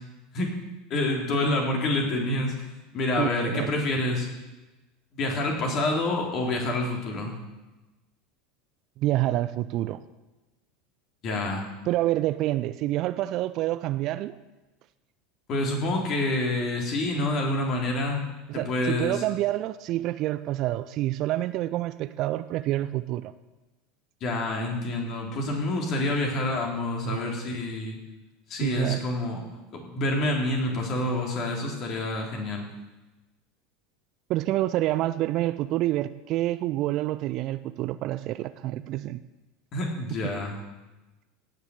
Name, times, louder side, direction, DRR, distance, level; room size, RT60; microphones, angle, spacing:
voice 1, 0.9-2.5 2.9-4.3 5.1-7.3 11.2-11.7 15.5-18.2 18.5-19.2 24.2-28.0 28.5-29.4 29.7-32.6 39.7-40.6, left 2 dB, 40° left, 1 dB, 3.6 m, -27 dB
voice 2, 3.2-3.7 9.0-10.0 11.9-14.4 18.5-23.3 27.0-27.2 28.6-29.0 34.3-39.2, right 15 dB, 45° right, 14 dB, 0.5 m, -27 dB
17.0 x 6.8 x 7.7 m, 1.1 s
figure-of-eight pair, 75°, 0 cm